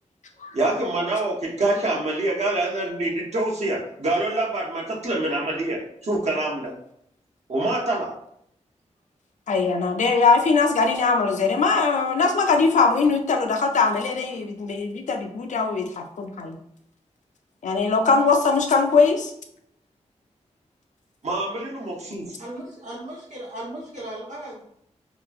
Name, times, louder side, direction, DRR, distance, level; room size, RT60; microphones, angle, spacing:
voice 1, 0.5-6.7 7.5-8.1 21.2-22.4, right 2 dB, 65° right, -2 dB, 0.8 m, -25 dB
voice 2, 9.5-16.6 17.6-19.3, left 4 dB, 85° left, 4 dB, 0.4 m, -21 dB
voice 3, 22.4-24.6, right 1 dB, 85° right, -6 dB, 1.2 m, -36 dB
2.8 x 2.3 x 2.5 m, 0.71 s
wide cardioid pair, 115°, 12 cm